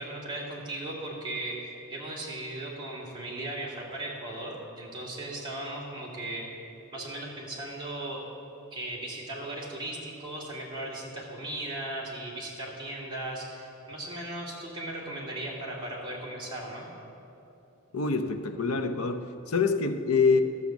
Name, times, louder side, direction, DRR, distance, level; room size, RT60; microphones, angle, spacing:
voice 1, 0.0-6.4 6.9-8.2 8.7-16.9, right 1 dB, 20° right, -5 dB, 2.3 m, -37 dB
voice 2, 17.9-20.4, left 4 dB, 85° left, 8 dB, 0.7 m, -25 dB
13.0 x 6.4 x 7.2 m, 2.9 s
head